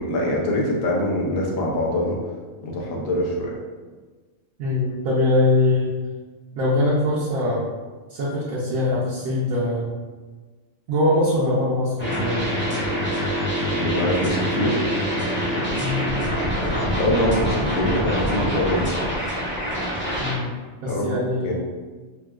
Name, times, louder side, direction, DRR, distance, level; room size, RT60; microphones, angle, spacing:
voice 1, 0.0-2.2 2.6-3.6 13.7-14.8 16.9-19.1 20.8-21.2 21.4-21.5, left 1 dB, 80° left, -2 dB, 1.0 m, -24 dB
voice 2, 4.6-6.0 6.6-7.6 8.1-9.9 10.9-12.4 15.8-16.1 20.2-20.5 20.8-21.5, left 2 dB, 75° right, -8 dB, 1.0 m, -22 dB
sound 1, 12.0-20.3, equal, 15° left, 0.4 m, -25 dB
3.9 x 2.1 x 2.3 m, 1.4 s
omnidirectional pair, 1.4 m